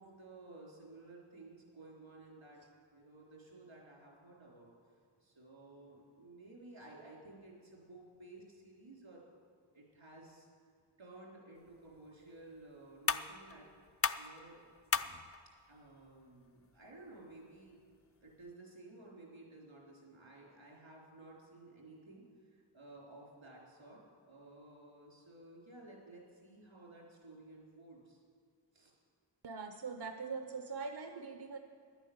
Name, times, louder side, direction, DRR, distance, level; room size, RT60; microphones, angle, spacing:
voice 1, 0.0-2.6 2.9-4.7 5.2-9.2 9.7-10.5 11.0-13.7 14.2-14.7 15.7-17.8 18.2-22.2 22.5-24.0 24.3-28.2 28.7-28.9, right 2 dB, 90° right, -3 dB, 3.6 m, -55 dB
sound 1, 11.5-18.5, left 6 dB, 30° left, 0.4 m, -41 dB
voice 2, 29.4-31.6, right 5 dB, 60° right, 6 dB, 0.8 m, -42 dB
11.0 x 9.0 x 8.5 m, 2.2 s
wide cardioid pair, 55°, 45 cm